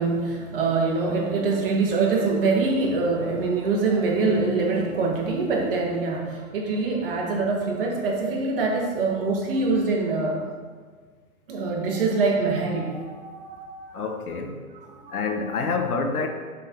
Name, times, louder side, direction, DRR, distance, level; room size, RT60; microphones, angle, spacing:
voice 1, 0.0-10.4 11.5-14.0 15.0-15.2, right 3 dB, 40° right, 0 dB, 1.2 m, -24 dB
voice 2, 13.9-14.6 15.1-16.3, left 4 dB, 75° left, 5 dB, 1.0 m, -27 dB
6.4 x 3.7 x 4.4 m, 1.5 s
hypercardioid pair, 140°, 44 cm